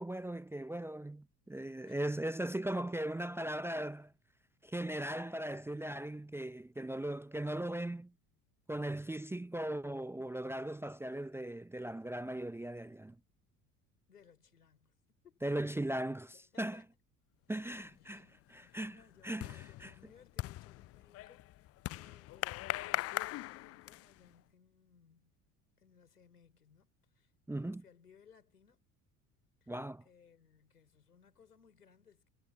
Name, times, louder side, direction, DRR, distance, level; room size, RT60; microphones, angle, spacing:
voice 1, 0.0-4.1 4.6-8.1 8.7-13.2 15.4-16.8 17.5-18.2 18.7-19.0 19.2-19.9 27.5-27.8 29.7-30.0, right 1 dB, 5° right, 0.7 m, -38 dB
voice 2, 1.8-2.1 14.1-15.0 15.2-15.4 16.2-17.0 17.7-18.4 18.7-25.4 25.8-28.9 29.6-29.7 30.0-32.3, left 7 dB, 80° left, 4.9 m, -64 dB
sound 1, 17.8-18.1 18.5-24.3, left 17 dB, 35° left, 0.5 m, -41 dB
figure-of-eight pair, 65°, 45 cm